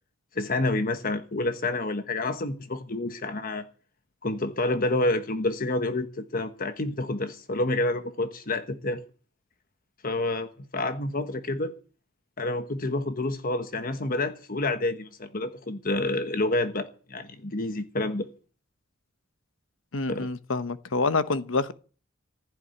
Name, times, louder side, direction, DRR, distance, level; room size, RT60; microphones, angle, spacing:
voice 1, 0.3-3.7 4.2-9.0 10.0-11.7 12.4-18.3 20.1-20.3, left 2 dB, 45° left, 1.2 m, -28 dB
voice 2, 19.9-21.7, left 3 dB, 70° left, 1.0 m, -27 dB
15.5 x 7.1 x 9.8 m
head